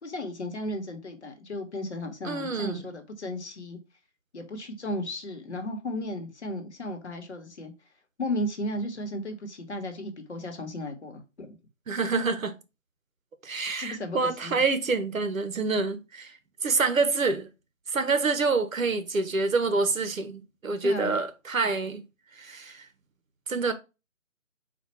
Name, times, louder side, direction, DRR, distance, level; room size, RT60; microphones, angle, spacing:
voice 1, 0.0-3.8 4.3-7.7 8.2-11.6 13.7-14.6 20.8-21.2, left 1 dB, 55° left, 1.0 m, -35 dB
voice 2, 2.2-2.8 11.9-12.5 13.4-17.5 17.9-22.0 22.3-22.8 23.5-23.7, right 4 dB, 75° right, 0.9 m, -27 dB
4.2 x 2.3 x 4.3 m
figure-of-eight pair, 170°, 40 cm